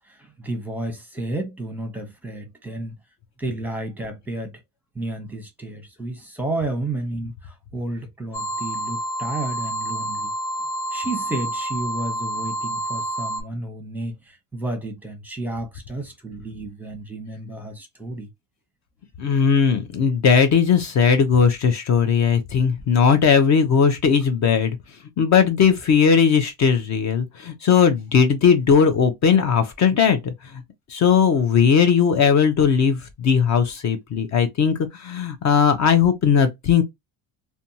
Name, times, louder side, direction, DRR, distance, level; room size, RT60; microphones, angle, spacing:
voice 1, 0.1-2.9 3.4-4.6 4.9-10.3 10.9-18.3, right 2 dB, 5° right, 0.8 m, -31 dB
sound 1, 8.3-13.4, right 1 dB, 80° left, 1.0 m, -28 dB
voice 2, 19.2-24.8 25.2-30.6 30.9-36.8, left 6 dB, 40° left, 0.5 m, -18 dB
2.6 x 2.2 x 2.7 m
cardioid pair, 115°, 43 cm